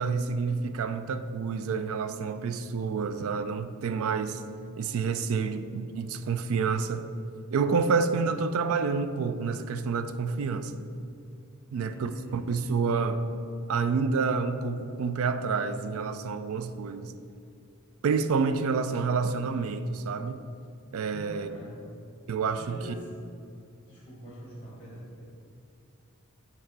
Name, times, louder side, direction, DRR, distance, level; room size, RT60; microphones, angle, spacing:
voice 1, 0.0-4.4 4.8-7.1 7.5-10.8 11.7-13.2 13.7-17.1 18.0-20.4 20.9-21.5 22.3-22.8, right 5 dB, 65° right, 10 dB, 0.3 m, -28 dB
voice 2, 11.7-12.4 21.1-21.8 22.6-23.2 23.9-25.2, equal, 20° left, -6 dB, 1.1 m, -44 dB
8.7 x 3.0 x 3.9 m, 2.6 s
head